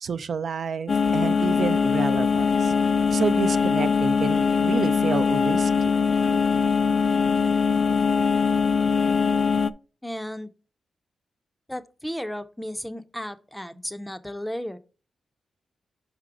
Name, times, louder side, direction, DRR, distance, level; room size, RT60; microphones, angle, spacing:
voice 1, 0.0-2.7 3.1-5.7, right 6 dB, 65° right, 0.4 m, -29 dB
sound 1, 0.9-9.7, left 5 dB, 50° left, 0.3 m, -22 dB
voice 2, 10.0-10.5 11.7-14.8, equal, 5° left, 0.6 m, -34 dB
5.3 x 5.0 x 4.7 m
cardioid pair, 85°, 0 cm